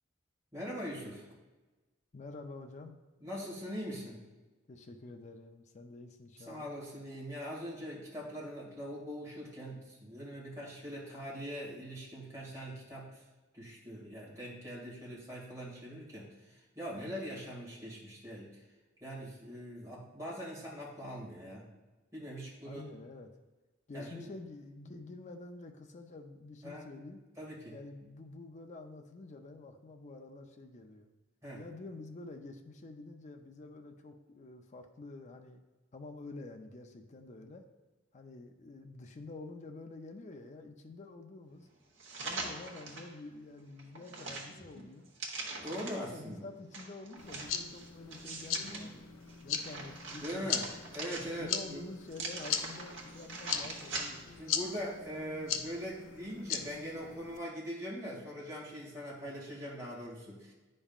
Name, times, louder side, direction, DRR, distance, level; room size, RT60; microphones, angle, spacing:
voice 1, 0.5-1.3 3.2-4.2 6.5-13.2 13.5-18.6 19.0-21.6 22.1-22.8 23.9-24.3 26.6-26.9 27.4-27.8 31.4-31.6 45.6-46.5 50.2-50.7 50.9-51.8 54.4-60.5, equal, 15° right, -5 dB, 2.0 m, -42 dB
voice 2, 2.1-3.0 4.7-6.7 22.6-23.3 23.9-27.2 27.7-31.1 31.5-35.6 35.9-37.7 38.1-41.7 42.2-45.1 45.7-49.0 49.4-50.5 51.2-54.4, left 2 dB, 35° left, 5 dB, 0.5 m, -48 dB
sound 1, 42.0-43.1 43.6-46.1 46.7-48.8 49.3-51.6 52.1-54.4 54.8-54.9, right 3 dB, 65° right, 1.1 m, -43 dB
sound 2, 47.2-57.4, left 7 dB, 85° left, 0.5 m, -39 dB
9.8 x 5.4 x 2.4 m, 1.2 s
head